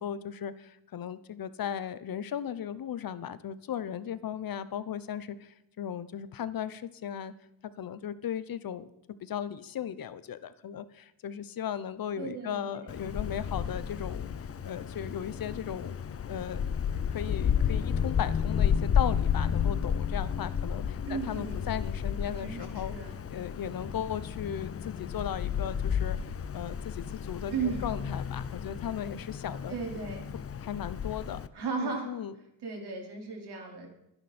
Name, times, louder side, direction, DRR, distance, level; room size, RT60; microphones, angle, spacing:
voice 1, 0.0-7.3 7.8-8.9 9.2-14.3 14.6-16.0 16.3-16.6 16.9-22.9 23.3-29.8 30.5-31.4 31.7-32.3, left 9 dB, 55° left, 15 dB, 0.9 m, -37 dB
voice 2, 12.2-12.9 21.1-21.6 22.2-23.2 27.5-27.8 29.7-30.3 31.5-32.1 32.6-33.9, right 5 dB, 70° right, 1 dB, 4.6 m, -35 dB
Wind, 12.9-31.5, left 8 dB, 35° left, 0.7 m, -32 dB
25.5 x 10.0 x 4.4 m, 0.85 s
cardioid pair, 140°, 41 cm